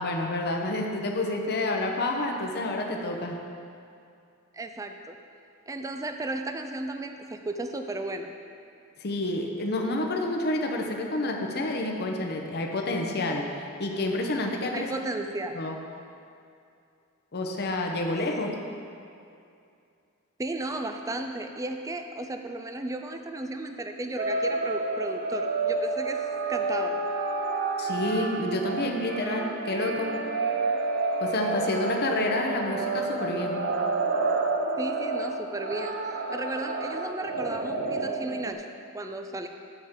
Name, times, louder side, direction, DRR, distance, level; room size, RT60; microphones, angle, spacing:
voice 1, 0.0-3.5 9.0-14.9 15.5-15.8 17.3-18.6 27.8-30.2 31.2-33.7, left 2 dB, 50° left, 2 dB, 0.8 m, -29 dB
voice 2, 4.5-5.2 5.7-8.3 14.7-15.6 20.4-27.0 34.8-38.7 38.9-39.5, right 2 dB, 15° right, 6 dB, 0.4 m, -34 dB
sound 1, 24.2-38.5, right 3 dB, 50° right, 0.7 m, -29 dB
10.5 x 7.2 x 3.7 m, 2.5 s
head